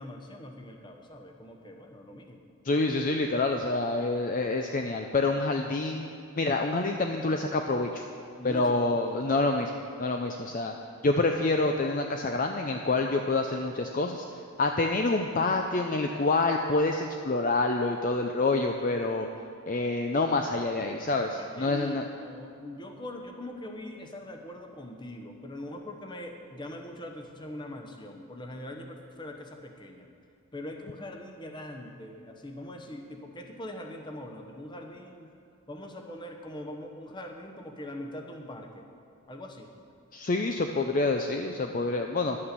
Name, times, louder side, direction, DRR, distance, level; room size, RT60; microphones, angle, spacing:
voice 1, 0.0-2.4 5.7-5.8 8.4-8.8 9.8-9.9 21.4-30.1 30.5-35.3 35.7-38.9 39.3-39.7, left 1 dB, 20° left, 3 dB, 0.9 m, -42 dB
voice 2, 2.6-6.1 6.4-8.0 8.4-9.7 10.0-10.7 11.0-14.2 14.6-19.3 19.7-22.1 40.1-42.4, left 3 dB, 40° left, 4 dB, 0.5 m, -27 dB
11.0 x 8.6 x 6.7 m, 2.4 s
head